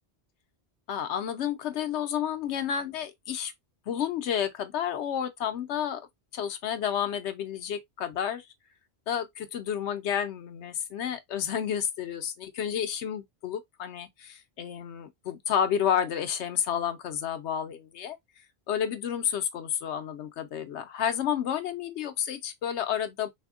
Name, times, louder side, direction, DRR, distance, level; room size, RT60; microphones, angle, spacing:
voice 1, 0.9-3.5 3.9-6.0 6.3-8.5 9.1-18.2 18.7-23.3, left 9 dB, 80° left, 0.9 m, -30 dB
3.5 x 2.7 x 2.4 m
omnidirectional pair, 1.1 m